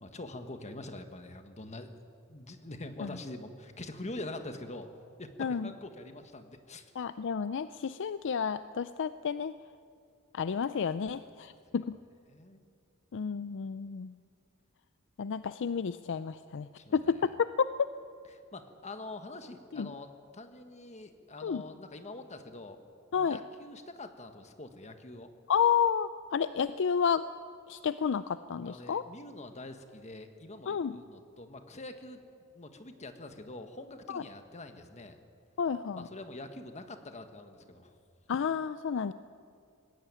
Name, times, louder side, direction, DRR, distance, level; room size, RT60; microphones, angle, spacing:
voice 1, 0.0-2.0 2.3-4.9 5.2-6.8 11.1-11.2 12.3-12.6 16.8-17.2 18.5-22.8 23.2-25.3 28.6-32.2 32.5-35.2 35.9-37.9, left 2 dB, 30° left, 7 dB, 1.5 m, -45 dB
voice 2, 5.4-5.7 7.0-9.6 10.3-12.0 13.1-14.1 15.2-17.9 19.7-19.9 21.4-21.6 23.1-23.4 25.5-27.3 27.7-29.1 30.7-31.0 34.1-34.2 35.6-36.1 38.3-39.1, left 6 dB, 55° left, 13 dB, 0.4 m, -31 dB
19.5 x 16.0 x 9.7 m, 2.4 s
head